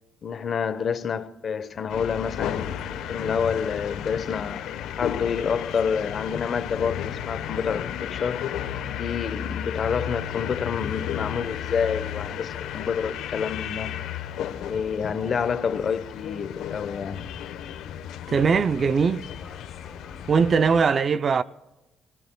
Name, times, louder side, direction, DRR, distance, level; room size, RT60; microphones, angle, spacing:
voice 1, 0.2-4.6 5.0-8.5 8.9-13.9 14.6-17.2, left 6 dB, 50° left, 1.0 m, -28 dB
sound 1, 1.9-20.8, left 10 dB, 90° left, 1.0 m, -34 dB
sound 2, 2.6-20.8, left 3 dB, 20° left, 3.5 m, -53 dB
voice 2, 18.3-19.2 20.3-21.4, right 5 dB, 45° right, 0.5 m, -20 dB
26.0 x 17.0 x 2.3 m
cardioid pair, 90°, 0 cm